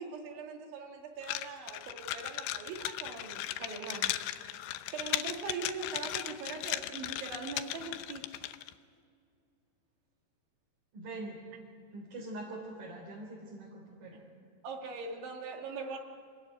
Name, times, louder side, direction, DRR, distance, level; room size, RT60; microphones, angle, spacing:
voice 1, 0.0-4.2 4.4-4.7 4.9-8.4 14.6-16.0, right 4 dB, 75° right, 2 dB, 4.7 m, -41 dB
sound 1, 1.2-8.7, left 14 dB, 85° left, 3.3 m, -37 dB
voice 2, 10.9-11.4 11.9-14.2, right 2 dB, 50° right, -3 dB, 5.2 m, -43 dB
28.0 x 19.0 x 9.6 m, 2.3 s
omnidirectional pair, 5.4 m